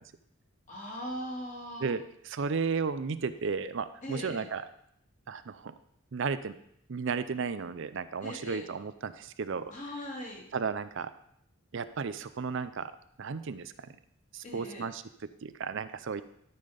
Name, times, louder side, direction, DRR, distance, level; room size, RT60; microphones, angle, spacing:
voice 1, 0.7-1.9 4.0-4.5 8.2-8.6 9.7-10.4 14.4-14.9, equal, 35° left, -2 dB, 2.6 m, -40 dB
voice 2, 1.8-4.7 5.3-5.7 6.1-6.6 6.9-9.6 10.5-11.1 11.7-12.9 13.2-13.7 14.3-16.2, right 5 dB, 60° right, 13 dB, 0.5 m, -34 dB
13.0 x 5.7 x 5.1 m, 0.72 s
head